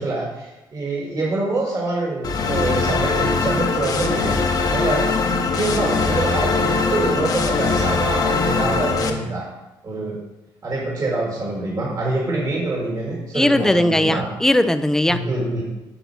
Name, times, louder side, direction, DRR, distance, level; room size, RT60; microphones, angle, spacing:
voice 1, 0.0-4.4 4.7-5.1 5.5-9.5 9.8-10.2 10.6-14.3 15.1-15.6, right 2 dB, 45° right, -3 dB, 2.0 m, -25 dB
sound 1, 2.2-9.1, left 4 dB, 45° left, 1.0 m, -21 dB
voice 2, 13.3-15.2, left 1 dB, 5° left, 11 dB, 0.5 m, -18 dB
7.9 x 4.1 x 5.9 m, 1.0 s
cardioid pair, 90°, 9 cm